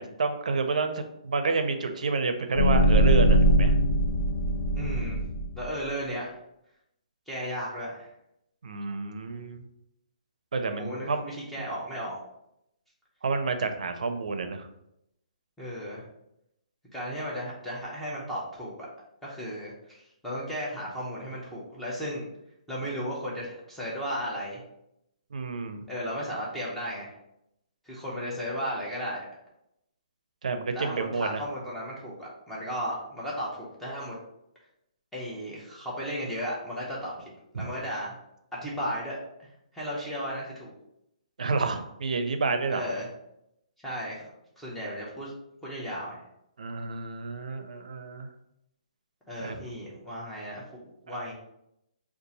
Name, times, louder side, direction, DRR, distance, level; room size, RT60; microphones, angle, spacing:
voice 1, 0.0-3.7 8.6-9.6 10.5-11.2 13.2-14.7 25.3-25.9 30.4-31.4 37.5-37.7 41.4-42.9 46.6-48.3 49.4-49.5 51.1-51.2, right 4 dB, 70° right, 7 dB, 0.5 m, -29 dB
sound 1, 2.5-5.7, right 1 dB, 55° left, 0.5 m, -21 dB
voice 2, 4.8-6.4 7.3-8.1 10.8-12.2 15.6-16.1 16.9-18.9 19.2-22.2 22.7-24.6 25.9-27.1 27.8-29.2 30.7-34.2 35.1-38.2 38.5-39.2 39.7-40.7 42.7-43.1 43.8-44.2 44.6-45.3 45.6-46.2 49.3-51.3, equal, ahead, -7 dB, 0.5 m, -35 dB
2.7 x 2.4 x 4.0 m, 0.82 s
hypercardioid pair, 175°, 4 cm